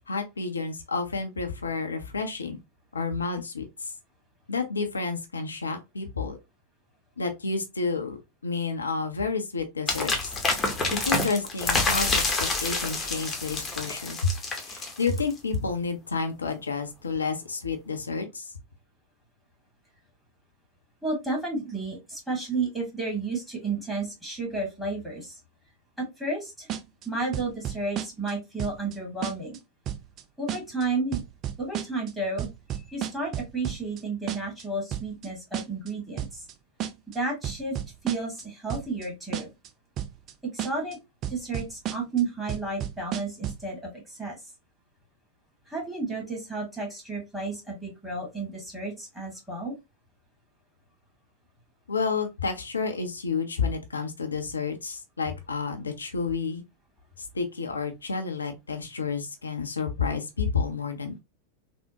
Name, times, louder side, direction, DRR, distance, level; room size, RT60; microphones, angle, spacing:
voice 1, 0.1-2.6 2.9-3.9 4.5-6.4 7.2-8.2 8.4-10.3 10.9-14.3 14.7-18.5 51.9-56.6 57.3-61.2, left 4 dB, 75° left, 0.5 m, -30 dB
sound 1, 9.9-15.4, left 3 dB, 20° left, 0.8 m, -27 dB
voice 2, 21.0-25.4 26.0-26.7 27.0-29.6 30.4-31.2 31.6-32.5 32.9-36.4 37.1-37.8 38.0-39.5 40.5-41.0 41.3-44.4 45.7-49.7, right 3 dB, 5° right, 1.6 m, -32 dB
sound 2, 26.7-27.1 27.3-28.3 28.6-28.9 29.2-29.6 29.9-30.2 30.5-30.8 31.1-32.1 32.4-34.0 34.3-34.6 34.9-35.3 35.5-35.9 36.2-36.5 36.8-37.2 37.4-38.4 38.7-39.1 39.3-39.7 40.0-40.3 40.6-40.9 41.2-42.2 42.5-43.7, right 10 dB, 35° right, 0.4 m, -32 dB
3.5 x 2.1 x 2.7 m
figure-of-eight pair, 90°, 0 cm